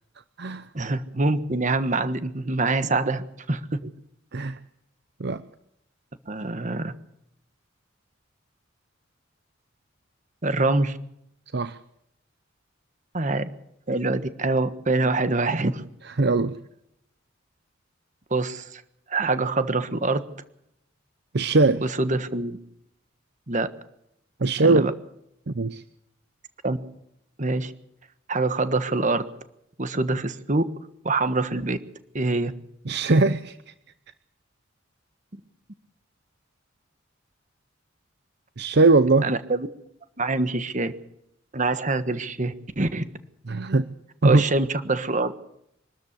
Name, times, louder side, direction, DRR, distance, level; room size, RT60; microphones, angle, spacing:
voice 1, 0.7-3.8 6.3-6.9 10.4-11.0 13.1-13.5 13.9-15.8 18.3-18.8 19.1-20.2 21.8-22.6 23.5-23.7 24.6-24.9 26.6-26.8 27.4-27.7 28.3-29.2 29.8-30.7 31.0-31.8 32.1-32.5 39.2-39.7 40.2-40.9 41.5-43.1 44.2-45.3, right 2 dB, 40° right, 12 dB, 1.4 m, -25 dB
voice 2, 16.2-16.6 21.3-21.8 24.4-24.9 25.5-25.8 32.9-33.7 38.6-39.3 43.5-43.9 44.2-44.4, right 3 dB, 55° right, 13 dB, 0.7 m, -20 dB
24.5 x 13.0 x 8.3 m, 0.79 s
head